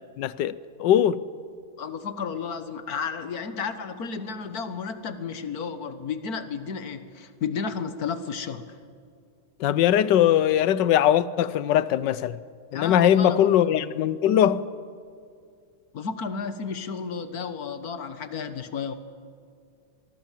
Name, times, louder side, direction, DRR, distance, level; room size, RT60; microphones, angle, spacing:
voice 1, 0.2-1.2 9.6-12.4 12.7-14.6, left 10 dB, 70° left, 1.3 m, -21 dB
voice 2, 1.8-8.8 12.7-13.5 15.9-18.9, left 6 dB, 50° left, 1.7 m, -32 dB
25.0 x 22.5 x 7.5 m
omnidirectional pair, 2.2 m